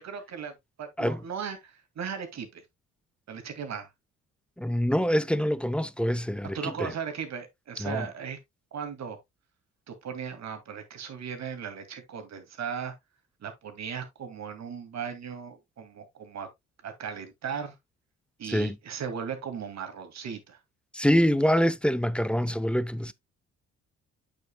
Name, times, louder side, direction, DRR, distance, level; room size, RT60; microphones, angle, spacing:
voice 1, 0.0-2.6 3.3-3.9 6.5-8.4 8.7-9.2 9.9-12.9 13.4-16.5 16.8-17.8 18.4-20.6, right 7 dB, 60° right, 2.2 m, -37 dB
voice 2, 4.6-6.9 7.8-8.1 18.5-18.8 20.9-23.1, equal, 5° left, 0.5 m, -25 dB
8.0 x 7.2 x 2.2 m
cardioid pair, 90°, 30 cm